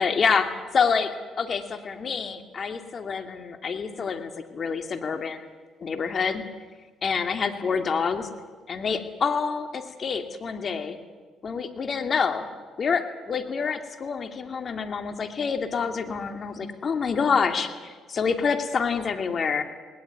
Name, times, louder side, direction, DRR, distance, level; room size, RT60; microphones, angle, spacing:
voice 1, 0.0-5.5 5.8-6.4 7.0-8.3 8.7-11.0 11.4-12.4 12.8-19.6, left 5 dB, 45° left, 6 dB, 2.6 m, -27 dB
19.5 x 18.5 x 9.5 m, 1.4 s
supercardioid pair, 70°, 0 cm